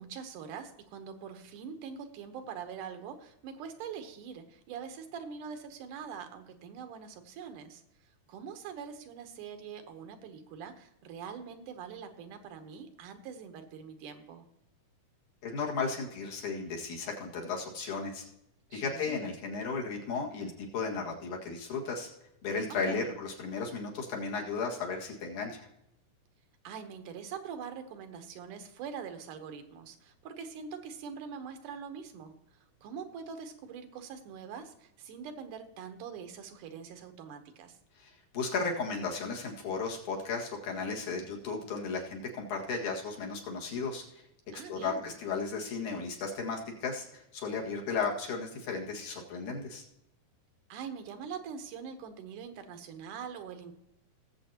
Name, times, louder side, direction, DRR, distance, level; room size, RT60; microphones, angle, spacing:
voice 1, 0.0-7.8 8.3-14.5 18.7-19.2 22.9-23.2 26.6-32.4 32.8-37.8 44.5-45.1 50.7-53.7, right 7 dB, 85° right, 7 dB, 2.5 m, -43 dB
voice 2, 15.4-18.2 18.7-22.1 22.4-25.7 38.0-44.0 44.5-49.8, left 4 dB, 70° left, -2 dB, 3.3 m, -35 dB
19.5 x 7.6 x 2.9 m, 0.85 s
omnidirectional pair, 3.6 m